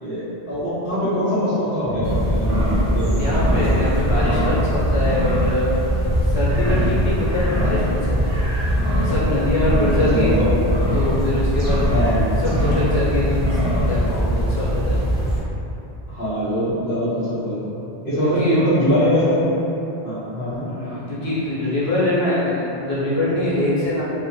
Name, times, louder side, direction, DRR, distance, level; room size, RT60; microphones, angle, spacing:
voice 1, 0.0-3.2 10.1-10.5 11.9-12.2 16.1-17.8 18.0-19.5 20.0-20.7, equal, 60° left, -12 dB, 1.1 m, -22 dB
voice 2, 1.8-2.1 3.2-5.7 6.3-8.2 9.0-10.4 10.9-11.8 12.4-13.6 13.9-15.2 18.2-18.6 20.7-24.1, left 1 dB, 80° left, -9 dB, 1.1 m, -23 dB
sound 1, 2.0-15.4, equal, 30° right, 0.9 m, -21 dB
2.6 x 2.2 x 2.6 m, 2.9 s
omnidirectional pair, 1.0 m